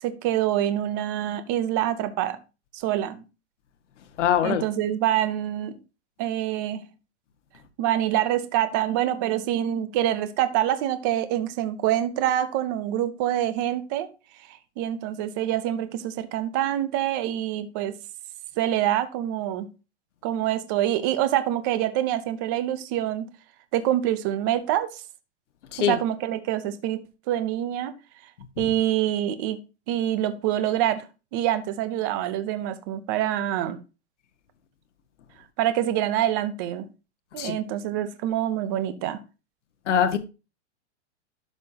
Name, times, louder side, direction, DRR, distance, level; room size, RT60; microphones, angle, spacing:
voice 1, 0.0-2.4 2.7-3.2 4.4-5.8 6.2-6.8 7.8-14.1 14.5-18.0 18.6-19.7 20.2-23.3 23.7-25.0 25.8-27.9 28.6-29.6 29.9-31.0 31.3-33.8 35.6-36.9 37.3-39.2, right 12 dB, 15° right, 0.5 m, -26 dB
voice 2, 4.2-4.6 25.7-25.9 37.4-37.6 39.9-40.2, left 9 dB, 80° left, 1.6 m, -22 dB
12.0 x 5.7 x 2.7 m
supercardioid pair, 175°, 35 cm